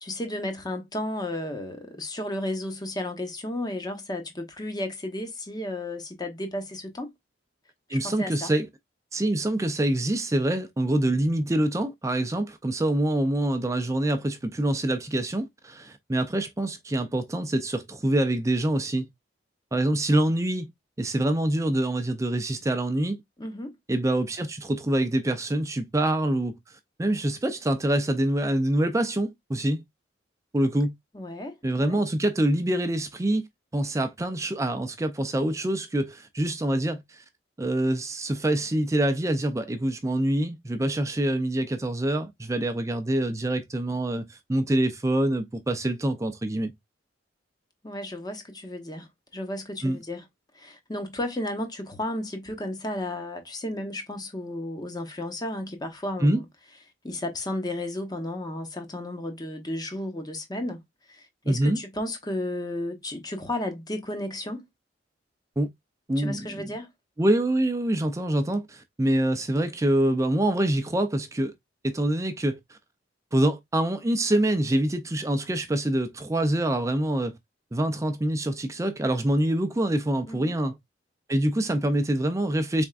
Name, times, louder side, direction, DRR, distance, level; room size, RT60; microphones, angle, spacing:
voice 1, 0.0-7.1 7.9-8.5 23.4-23.8 31.1-32.0 47.8-50.3 50.5-56.4 57.0-60.8 61.1-64.7 66.2-66.9 80.3-80.5, left 1 dB, 20° left, 0.8 m, -33 dB
voice 2, 7.9-8.7 9.1-19.1 19.7-20.7 21.0-23.2 23.9-26.5 27.0-29.8 30.5-30.9 31.6-33.5 33.7-37.2 37.6-46.7 49.8-50.0 56.2-56.4 61.5-61.8 65.6-65.7 66.1-66.8 67.2-71.5 71.8-72.8 73.3-77.3 77.7-80.7 81.3-82.9, right 1 dB, 15° right, 0.4 m, -25 dB
4.2 x 3.5 x 2.4 m
head